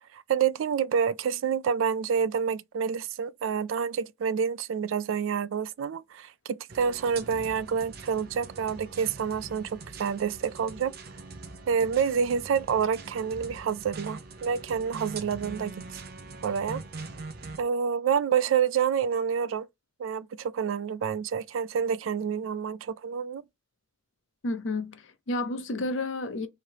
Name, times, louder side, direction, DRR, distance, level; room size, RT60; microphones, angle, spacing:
voice 1, 0.1-10.9 11.7-15.9 16.4-16.8 17.6-19.7 20.0-23.4, right 7 dB, 85° right, 0.3 m, -28 dB
sound 1, 6.7-17.6, right 3 dB, 55° right, 0.7 m, -43 dB
voice 2, 24.4-26.5, left 2 dB, 75° left, 0.7 m, -31 dB
3.1 x 2.8 x 4.5 m
head